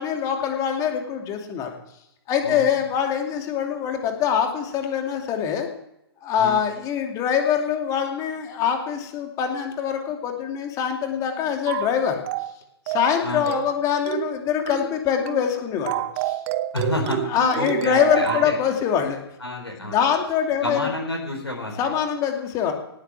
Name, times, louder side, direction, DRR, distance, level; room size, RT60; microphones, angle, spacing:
voice 1, 0.0-1.7 2.3-5.7 6.2-12.2 12.9-16.4 17.3-19.2 19.8-20.9 21.8-22.7, left 8 dB, 25° left, 4 dB, 2.6 m, -24 dB
sound 1, 11.7-11.9 12.3-12.5 12.9-13.2 13.5-13.7 14.1-14.3 14.7-14.9 15.3-15.5 15.9-18.5, right 14 dB, 35° right, 0.9 m, -28 dB
voice 2, 16.7-17.2 17.6-18.6 19.4-20.1 20.6-21.9, left 1 dB, 80° left, 0 dB, 4.2 m, -29 dB
18.0 x 8.4 x 7.6 m, 0.81 s
figure-of-eight pair, 120°, 14 cm